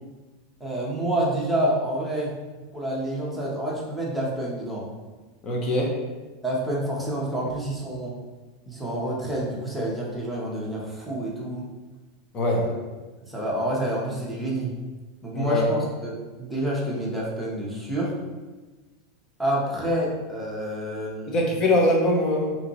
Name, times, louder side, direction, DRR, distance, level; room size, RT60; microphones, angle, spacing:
voice 1, 0.6-2.3 2.7-4.9 6.4-8.1 8.7-11.6 13.2-14.7 15.2-16.1 16.4-18.1 19.4-21.5, right 1 dB, ahead, -6 dB, 0.9 m, -28 dB
voice 2, 5.4-6.0 12.3-12.7 15.3-15.7 21.3-22.6, left 1 dB, 30° left, -1 dB, 0.8 m, -22 dB
3.0 x 2.5 x 4.1 m, 1.2 s
supercardioid pair, 140°, 2 cm